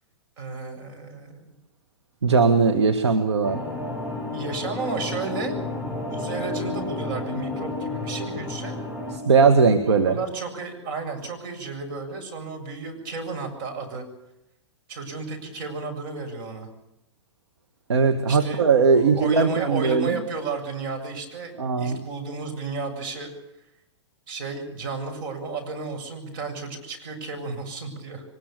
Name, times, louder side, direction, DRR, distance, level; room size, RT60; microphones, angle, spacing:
voice 1, 0.4-1.5 4.3-5.6 6.1-8.7 10.0-14.0 14.9-16.7 18.3-23.3 24.3-28.2, right 4 dB, 45° right, 4 dB, 7.7 m, -33 dB
voice 2, 2.2-3.6 9.3-10.2 17.9-20.2 21.6-22.0, right 5 dB, 70° right, 6 dB, 2.1 m, -19 dB
sound 1, 3.4-9.2, left 2 dB, 10° right, 6.7 m, -31 dB
23.5 x 21.0 x 7.1 m, 0.85 s
figure-of-eight pair, 105°, 15 cm